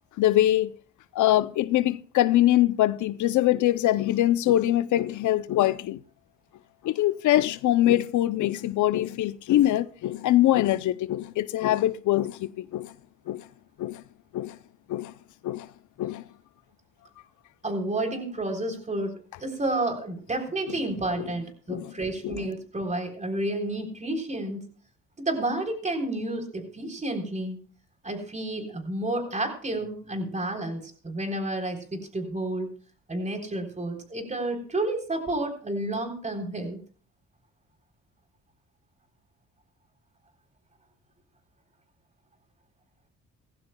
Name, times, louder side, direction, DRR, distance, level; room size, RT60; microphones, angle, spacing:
voice 1, 0.2-0.7 1.1-6.0 6.8-12.9 13.3-13.4 13.8-14.0 14.3-14.6 14.9-15.1 15.4-15.7 16.0-16.2 21.7-21.9 22.2-22.4, left 14 dB, 75° left, 0.6 m, -23 dB
voice 2, 17.6-24.7 25.2-27.6 28.0-32.7 33.1-36.8, right 1 dB, 25° right, 3.6 m, -30 dB
18.0 x 15.5 x 2.2 m
cardioid pair, 90°, 30 cm